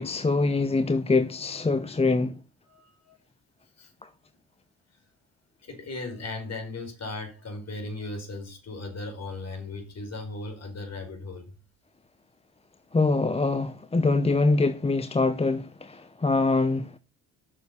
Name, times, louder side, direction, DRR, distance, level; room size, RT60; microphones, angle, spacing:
voice 1, 0.0-2.4 12.9-17.0, left 3 dB, 15° left, 0.8 m, -24 dB
voice 2, 2.6-3.2 3.8-3.9 5.6-11.6, left 2 dB, 45° left, 5.1 m, -37 dB
7.3 x 6.8 x 8.2 m
cardioid pair, 85°, 35 cm